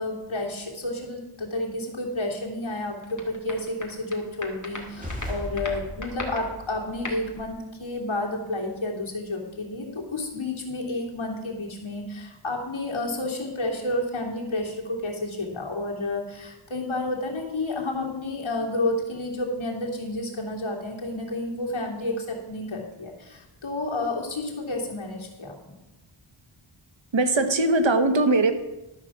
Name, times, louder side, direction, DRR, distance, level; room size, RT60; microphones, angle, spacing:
voice 1, 0.0-25.8, left 2 dB, 75° left, -1 dB, 2.7 m, -30 dB
sound 1, 3.0-4.2 4.4-7.5, left 2 dB, 35° left, 2.3 m, -38 dB
sound 2, 4.7-7.5, left 1 dB, 15° right, 3.1 m, -38 dB
voice 2, 27.1-28.5, right 2 dB, 65° right, 8 dB, 1.3 m, -20 dB
12.0 x 6.0 x 7.2 m, 1.0 s
wide cardioid pair, 85°, 48 cm